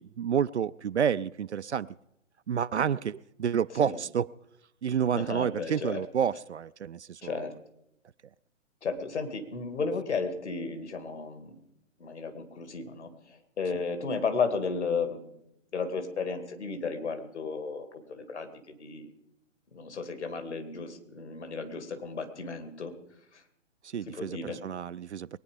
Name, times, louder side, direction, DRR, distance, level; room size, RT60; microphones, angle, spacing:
voice 1, 0.0-1.9 2.5-4.4 4.8-7.5 23.8-25.4, right 8 dB, 65° right, 15 dB, 0.5 m, -29 dB
voice 2, 5.2-6.0 7.2-7.5 8.8-11.6 12.0-15.3 15.7-19.1 19.7-22.9 23.3-23.4 24.1-24.6, left 4 dB, 60° left, 7 dB, 2.4 m, -34 dB
21.0 x 9.5 x 5.3 m, 0.81 s
figure-of-eight pair, 135°, 38 cm